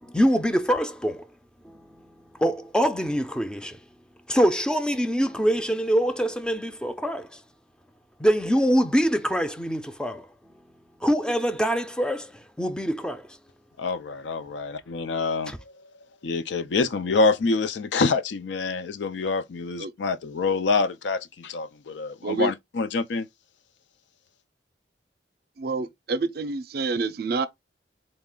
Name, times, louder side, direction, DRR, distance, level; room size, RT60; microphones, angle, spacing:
voice 1, 0.0-1.3 1.6-2.1 2.3-3.8 4.3-7.4 8.2-10.3 11.0-13.3 15.5-15.6, equal, 5° left, 0.4 m, -24 dB
voice 2, 13.8-15.5 16.2-23.3, left 4 dB, 80° left, 0.5 m, -26 dB
voice 3, 22.2-22.5 25.6-27.5, right 3 dB, 60° right, 0.5 m, -27 dB
4.0 x 2.4 x 3.6 m
head